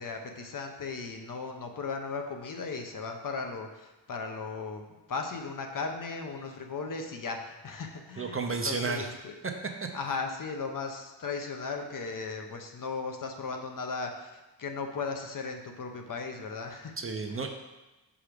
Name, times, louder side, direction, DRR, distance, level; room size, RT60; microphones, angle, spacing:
voice 1, 0.0-4.8 5.1-9.4 9.9-17.0 17.3-17.4, left 4 dB, 45° left, 4 dB, 0.9 m, -37 dB
voice 2, 8.2-9.1 9.4-9.5 9.8-9.9 17.0-17.5, right 4 dB, 30° right, 4 dB, 0.6 m, -32 dB
7.3 x 5.0 x 5.1 m, 1.1 s
wide cardioid pair, 150°, 44 cm